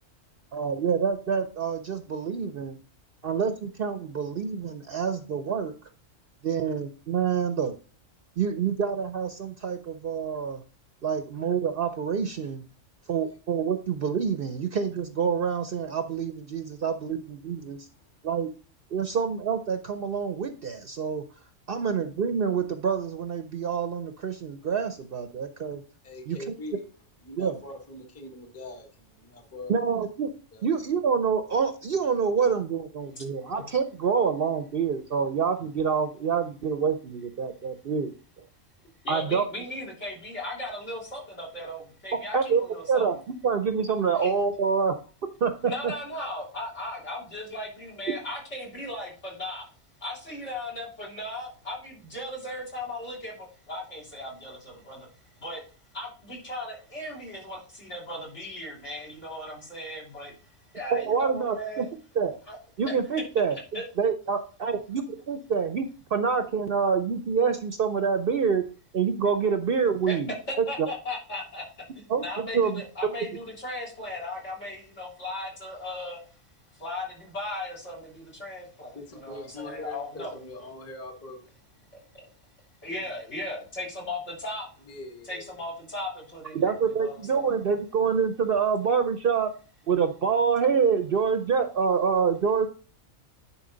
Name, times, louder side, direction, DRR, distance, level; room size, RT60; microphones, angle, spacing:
voice 1, 0.5-2.8 3.2-5.7 6.4-7.7 8.4-10.6 11.0-12.6 13.1-17.9 18.2-18.5 18.9-21.2 21.7-25.8 26.3-26.4 27.4-27.6 29.7-30.3 30.6-38.1 39.1-39.4 42.3-42.6 42.9-43.1 43.4-44.9 45.4-45.9 60.9-61.9 62.2-62.3 62.8-68.6 68.9-70.9 72.1-72.8 86.5-89.5 89.9-92.7, right 6 dB, 55° right, 0.7 m, -26 dB
voice 2, 17.7-18.1 26.0-26.8 27.2-29.8 30.5-30.7 78.9-81.9 82.4-82.5 83.0-83.5 84.9-85.6, left 1 dB, 10° left, 1.0 m, -43 dB
voice 3, 39.0-43.2 44.2-44.3 45.6-49.7 50.0-55.1 55.4-55.6 55.9-60.4 60.7-61.9 62.5-62.6 62.9-63.0 63.7-63.8 70.1-70.2 70.5-71.7 71.9-76.2 76.7-80.3 82.1-82.3 82.8-84.7 85.3-87.5, left 1 dB, 60° left, 3.7 m, -37 dB
10.0 x 4.5 x 3.8 m
omnidirectional pair, 1.3 m